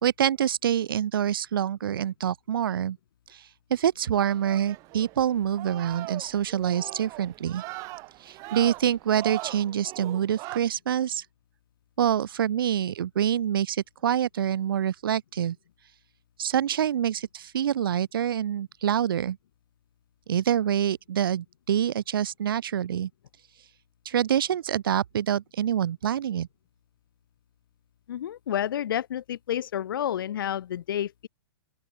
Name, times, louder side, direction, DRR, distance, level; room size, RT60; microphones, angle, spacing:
voice 1, 0.0-3.0 3.3-3.4 3.7-7.6 8.2-11.2 12.0-15.6 16.4-19.4 20.3-23.1 24.1-26.5, right 9 dB, 80° right, 2.1 m, -26 dB
sound 1, 4.3-10.6, right 23 dB, 30° right, 2.0 m, -40 dB
voice 2, 28.1-31.3, left 10 dB, 75° left, 1.2 m, -30 dB
open air
hypercardioid pair, 160°, 12 cm